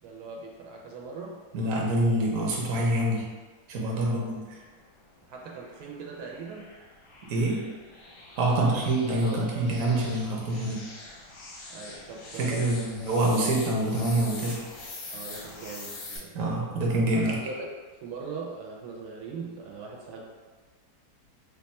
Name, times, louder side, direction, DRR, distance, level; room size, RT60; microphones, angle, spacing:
voice 1, 0.0-1.4 4.0-4.3 5.2-6.7 8.5-8.8 9.2-9.7 11.7-13.0 15.1-16.3 17.2-17.7 18.0-20.2, right 4 dB, 85° right, -1 dB, 1.2 m, -40 dB
voice 2, 1.5-3.3 3.7-4.4 7.3-7.6 8.4-10.9 12.4-14.7 16.3-17.4, right 1 dB, 60° right, -2 dB, 1.1 m, -26 dB
sound 1, 4.6-16.2, left 2 dB, 55° left, 0.6 m, -44 dB
3.1 x 2.3 x 4.0 m, 1.4 s
omnidirectional pair, 1.7 m